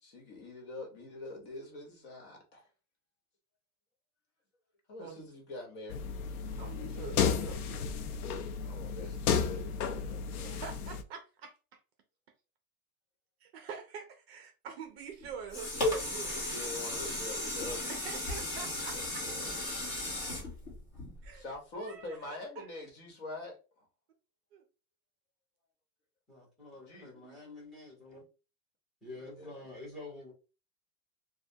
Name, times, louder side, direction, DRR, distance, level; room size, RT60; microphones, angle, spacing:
voice 1, 0.0-2.7 4.9-6.1 8.6-10.6 16.3-18.6 18.9-19.6 21.3-23.9 26.8-27.1 29.1-29.6, left 2 dB, 50° left, 1.2 m, -45 dB
sound 1, 5.9-11.0, left 6 dB, 75° left, 0.6 m, -33 dB
voice 2, 6.6-7.8 10.4-11.5 13.4-16.4 18.0-19.2 21.2-21.4 21.8-22.2 22.6-22.7 24.5-24.6 27.2-27.4, right 6 dB, 45° right, 0.5 m, -45 dB
sound 2, 15.2-21.5 22.0-22.1, left 1 dB, 25° left, 1.1 m, -35 dB
voice 3, 26.3-28.2 29.0-30.3, left 2 dB, ahead, 0.9 m, -48 dB
3.3 x 2.2 x 2.7 m
supercardioid pair, 170°, 46 cm